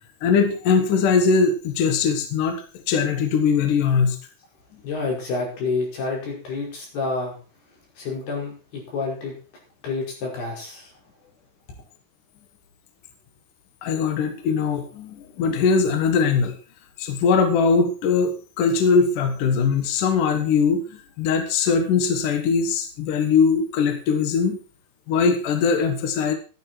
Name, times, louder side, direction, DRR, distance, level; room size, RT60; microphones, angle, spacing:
voice 1, 0.2-4.2 13.8-16.6 17.0-24.6 25.1-26.3, left 5 dB, 65° left, 6 dB, 2.8 m, -21 dB
voice 2, 4.8-7.4 8.0-9.4 9.8-10.9, left 3 dB, 85° left, -1 dB, 7.1 m, -28 dB
14.5 x 11.0 x 4.5 m, 0.37 s
omnidirectional pair, 4.4 m